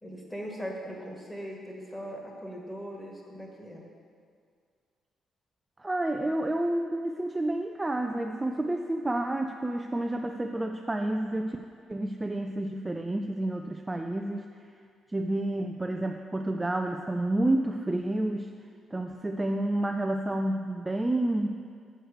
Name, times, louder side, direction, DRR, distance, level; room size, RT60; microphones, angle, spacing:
voice 1, 0.0-3.9, equal, 10° left, -1 dB, 1.6 m, -40 dB
voice 2, 5.8-11.6 11.9-14.5 15.1-18.5 18.9-21.6, right 1 dB, 15° right, 4 dB, 0.4 m, -29 dB
7.9 x 4.4 x 6.6 m, 2.2 s
cardioid pair, 90°, 0 cm